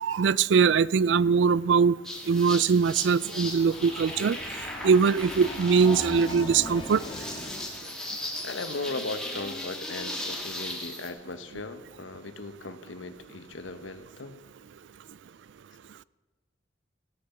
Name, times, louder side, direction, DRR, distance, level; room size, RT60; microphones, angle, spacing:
voice 1, 0.0-2.0 2.3-4.4 4.8-7.0, right 5 dB, 70° right, 0.4 m, -22 dB
sound 1, 2.0-11.1, left 1 dB, 5° left, 2.3 m, -37 dB
Train, 2.9-7.8, left 1 dB, 25° left, 2.0 m, -39 dB
voice 2, 8.4-14.4, left 3 dB, 90° left, 1.0 m, -37 dB
16.0 x 6.8 x 8.1 m
head